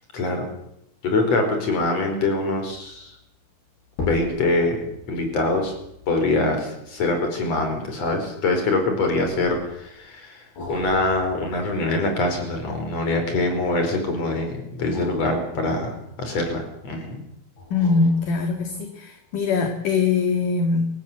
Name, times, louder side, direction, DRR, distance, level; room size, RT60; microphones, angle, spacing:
voice 1, 0.1-0.5 1.0-3.2 4.0-4.8 5.1-5.7 6.1-17.2, left 2 dB, 40° left, 5 dB, 5.6 m, -24 dB
sound 1, 2.8-3.0 3.9-8.6 9.3-9.9 10.6-13.5 14.7-16.8 17.6-19.0 19.5-19.6, left 2 dB, 75° left, 8.9 m, -40 dB
voice 2, 17.7-20.9, left 4 dB, 60° left, 6 dB, 3.3 m, -22 dB
25.5 x 16.5 x 8.1 m, 0.79 s
omnidirectional pair, 4.7 m